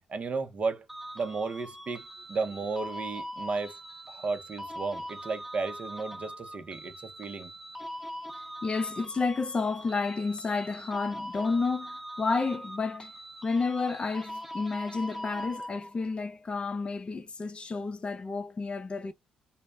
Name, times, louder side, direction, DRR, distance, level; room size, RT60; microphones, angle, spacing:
voice 1, 0.1-0.9 1.1-3.8 4.1-7.5, right 4 dB, 45° right, 0.5 m, -34 dB
sound 1, 0.9-16.1, equal, 5° right, 0.7 m, -42 dB
voice 2, 8.6-13.1 13.4-19.1, left 4 dB, 35° left, 0.5 m, -31 dB
2.1 x 2.0 x 3.3 m
supercardioid pair, 60°, 3 cm